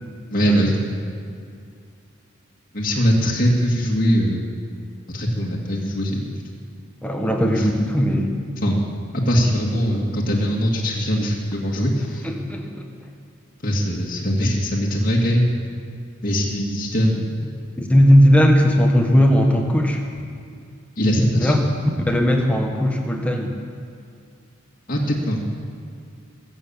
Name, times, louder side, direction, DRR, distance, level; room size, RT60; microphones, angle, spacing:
voice 1, 0.3-0.8 2.7-4.6 5.1-6.4 7.6-7.7 8.6-8.9 9.1-12.3 13.6-15.5 16.2-17.4 21.0-21.6 24.9-25.5, equal, 45° left, -4 dB, 2.1 m, -21 dB
voice 2, 7.0-8.3 12.2-12.9 17.8-20.0 21.4-21.6 22.1-23.6, equal, 5° left, 1 dB, 1.6 m, -17 dB
22.0 x 8.3 x 7.1 m, 2.4 s
head